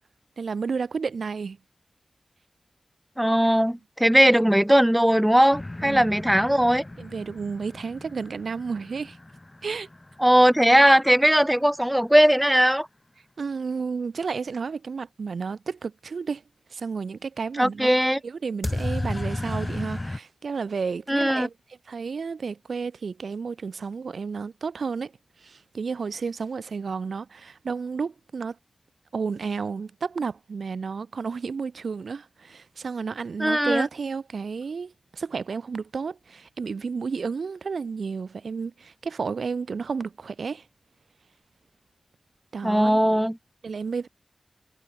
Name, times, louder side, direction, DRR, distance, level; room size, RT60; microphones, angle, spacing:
voice 1, 0.4-1.6 5.8-6.1 7.0-9.2 9.6-9.9 13.4-16.4 16.7-17.9 18.2-21.5 21.9-25.1 25.4-28.6 29.1-40.7 42.5-43.1 43.6-44.1, right 5 dB, 85° right, 3.6 m, -32 dB
voice 2, 3.2-6.8 10.2-12.9 17.6-18.2 21.1-21.5 33.4-33.9 42.6-43.4, equal, 5° right, 3.1 m, -19 dB
sound 1, 5.5-11.3 18.6-20.2, left 2 dB, 30° left, 1.8 m, -34 dB
cardioid pair, 40°, 0 cm